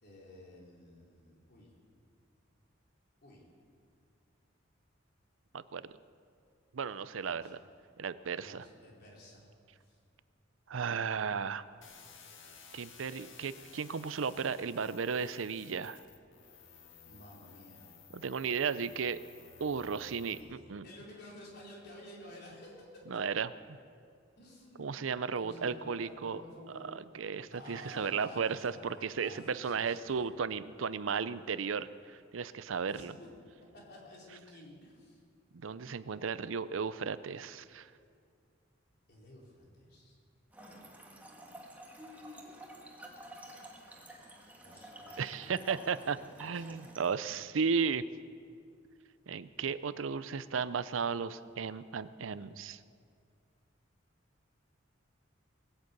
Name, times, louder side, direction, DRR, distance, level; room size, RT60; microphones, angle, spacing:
voice 1, 0.0-1.7 3.2-3.5 7.2-7.5 8.4-9.5 9.8-10.0 17.0-17.9 20.3-23.1 24.4-25.0 25.3-26.9 27.4-30.3 32.8-33.3 33.7-35.2 39.1-40.2 44.6-45.7 45.9-46.8, left 1 dB, 55° left, -3 dB, 4.0 m, -52 dB
voice 2, 6.7-7.6 8.0-8.6 10.7-11.6 12.7-16.0 18.1-19.2 19.6-20.9 23.1-23.5 24.8-26.4 26.9-33.1 35.5-37.9 45.2-48.0 49.3-52.8, right 6 dB, 90° right, 15 dB, 0.6 m, -35 dB
sound 1, 11.8-20.4, left 6 dB, 80° left, 1.7 m, -55 dB
Trickle dribble / Fill (with liquid), 40.5-47.2, right 1 dB, 10° right, 1.7 m, -50 dB
21.0 x 8.1 x 8.3 m, 2.2 s
head